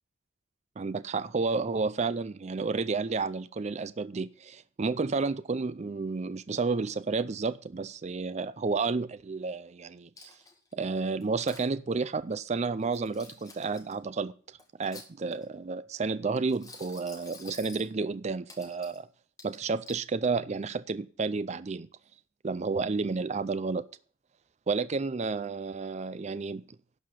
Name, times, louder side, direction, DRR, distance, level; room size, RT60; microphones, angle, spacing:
voice 1, 0.8-10.3 10.7-14.3 14.8-19.1 19.4-21.9 22.4-23.9 24.7-26.8, right 4 dB, 35° right, 0.4 m, -31 dB
Coin (dropping), 10.2-10.7 11.2-11.7 12.8-13.9 14.6-15.5 16.5-17.9 18.5-19.0 19.4-20.0, left 3 dB, 20° left, 1.9 m, -49 dB
11.5 x 4.8 x 8.1 m
head